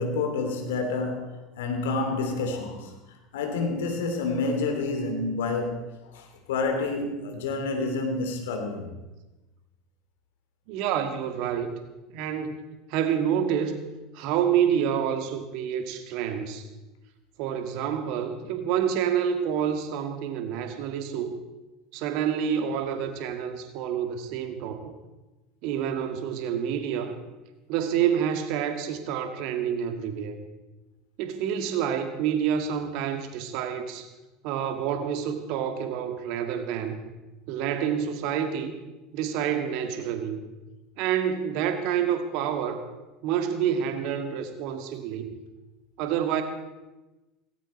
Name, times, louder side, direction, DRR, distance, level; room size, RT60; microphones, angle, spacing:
voice 1, 0.0-2.9 3.3-8.9, left 3 dB, 70° left, 2.8 m, -29 dB
voice 2, 10.7-11.7 12.1-12.6 12.9-16.6 17.4-21.4 21.9-24.9 25.6-27.1 27.7-30.4 31.2-34.1 34.4-37.1 37.5-38.7 39.1-40.4 41.0-42.8 43.2-45.3 46.0-46.4, right 8 dB, 60° right, 2.0 m, -28 dB
18.0 x 17.0 x 4.4 m
hypercardioid pair, 75°, 0 cm